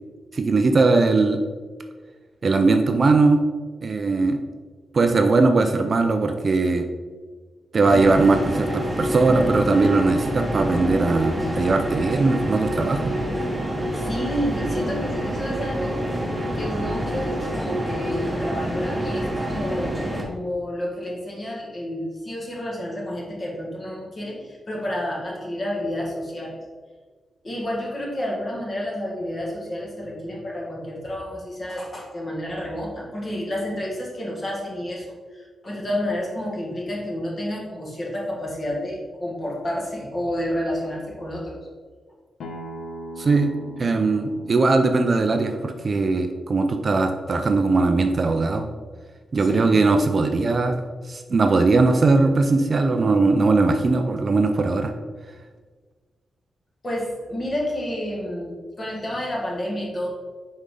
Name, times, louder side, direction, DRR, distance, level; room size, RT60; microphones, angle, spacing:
voice 1, 0.3-1.4 2.4-3.4 3.8-4.4 4.9-6.9 7.7-13.1 43.2-43.5 43.8-48.7 49.3-54.9, right 3 dB, 35° right, 6 dB, 0.5 m, -20 dB
sound 1, 7.8-20.2, equal, 10° right, 1.3 m, -27 dB
voice 2, 13.9-16.1 16.5-26.6 27.4-41.6 49.4-49.8 56.8-60.1, equal, 30° left, -2 dB, 1.8 m, -30 dB
Acoustic guitar, 42.4-47.6, equal, 75° left, 1.0 m, -41 dB
8.3 x 5.3 x 3.8 m, 1.5 s
wide cardioid pair, 165°, 0 cm